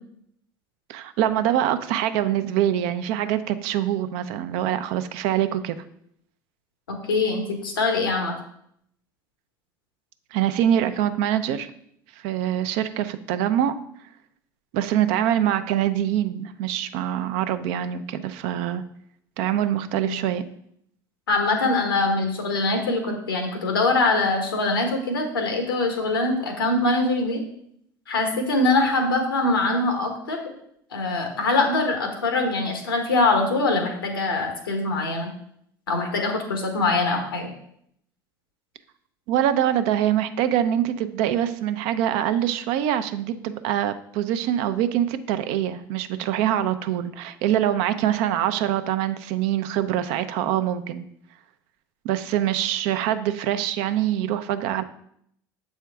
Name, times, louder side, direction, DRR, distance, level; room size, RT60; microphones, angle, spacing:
voice 1, 0.9-5.8 10.3-11.7 12.2-13.8 14.7-18.8 19.4-20.4 39.3-51.0 52.0-54.8, right 11 dB, 65° right, 11 dB, 0.5 m, -24 dB
voice 2, 6.9-8.3 20.0-20.1 21.3-27.4 28.1-30.4 30.9-35.3 35.9-37.5, left 3 dB, 90° left, 4 dB, 1.2 m, -23 dB
7.4 x 4.4 x 3.5 m, 0.71 s
hypercardioid pair, 75°, 11 cm